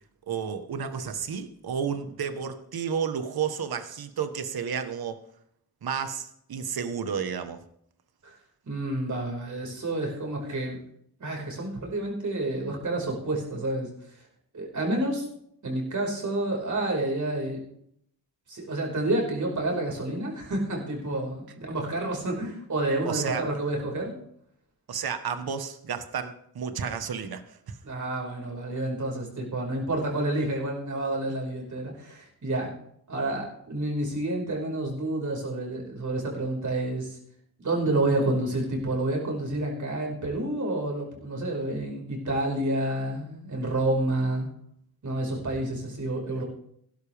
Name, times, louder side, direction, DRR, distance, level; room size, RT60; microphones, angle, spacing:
voice 1, 0.3-5.2 5.8-7.6 23.1-23.4 24.9-27.8, right 7 dB, 75° right, 9 dB, 1.4 m, -31 dB
voice 2, 8.6-10.8 11.2-13.9 14.5-15.3 15.6-17.6 18.5-24.2 27.8-32.7 33.1-37.2 37.6-44.5 45.0-46.4, right 2 dB, 50° right, 0 dB, 5.1 m, -29 dB
16.5 x 12.0 x 3.5 m, 0.70 s
wide cardioid pair, 145°, 37 cm